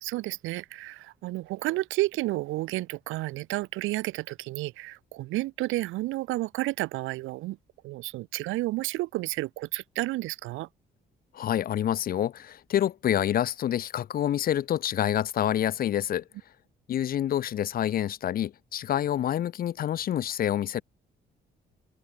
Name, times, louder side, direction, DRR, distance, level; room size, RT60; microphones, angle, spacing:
voice 1, 0.0-7.6 7.8-10.7, right 19 dB, 85° right, 0.4 m, -31 dB
voice 2, 11.3-16.2 16.9-20.8, left 11 dB, 50° left, 0.4 m, -27 dB
open air
cardioid pair, 90°, 20 cm